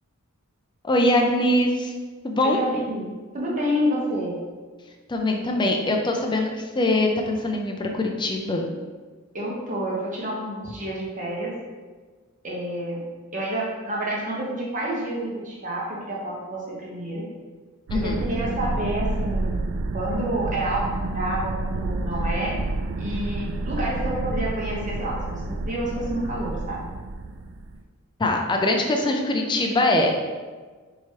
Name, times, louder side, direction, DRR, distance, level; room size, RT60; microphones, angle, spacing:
voice 1, 0.8-1.9 2.2-2.6 5.1-8.7 17.9-18.2 28.2-30.2, left 1 dB, 20° left, 2 dB, 0.4 m, -22 dB
voice 2, 2.4-3.1 3.3-4.4 9.3-11.5 12.4-13.0 13.3-17.2 17.9-19.6 19.9-22.6 23.0-26.8, right 1 dB, 35° right, -4 dB, 1.0 m, -29 dB
sound 1, 17.9-27.8, right 2 dB, 60° right, 0.3 m, -29 dB
4.7 x 3.0 x 2.8 m, 1.4 s
head